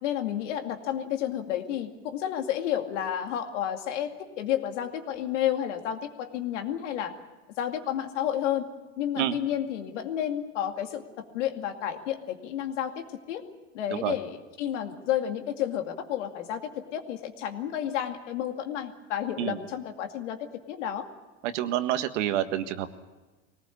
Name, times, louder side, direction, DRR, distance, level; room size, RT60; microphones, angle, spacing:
voice 1, 0.0-4.1 4.4-7.1 7.6-8.7 9.0-11.0 11.3-13.4 13.7-20.4 20.7-21.1, left 10 dB, 80° left, 5 dB, 2.4 m, -31 dB
voice 2, 21.4-22.9, right 12 dB, 75° right, 9 dB, 1.7 m, -28 dB
21.0 x 18.5 x 8.5 m, 1.2 s
supercardioid pair, 115°, 35 cm